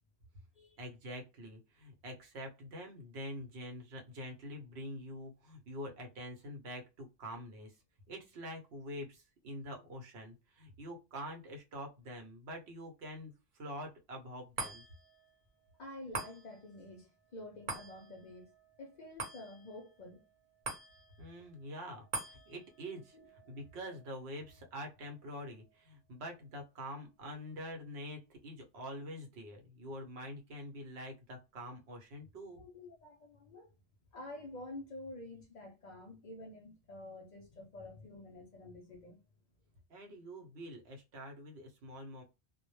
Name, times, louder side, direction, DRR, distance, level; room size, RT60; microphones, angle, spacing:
voice 1, 0.8-7.7 8.1-14.8 21.2-22.1 22.3-23.2 23.5-32.6 39.9-42.2, equal, 90° right, 1.0 m, -46 dB
sound 1, 14.6-27.1 27.6-27.7, right 3 dB, 55° right, 0.9 m, -47 dB
voice 2, 15.8-18.5 18.8-20.2 23.1-23.6 32.5-33.7 34.1-39.2, left 2 dB, 55° left, 0.6 m, -49 dB
2.1 x 2.1 x 3.0 m
omnidirectional pair, 1.0 m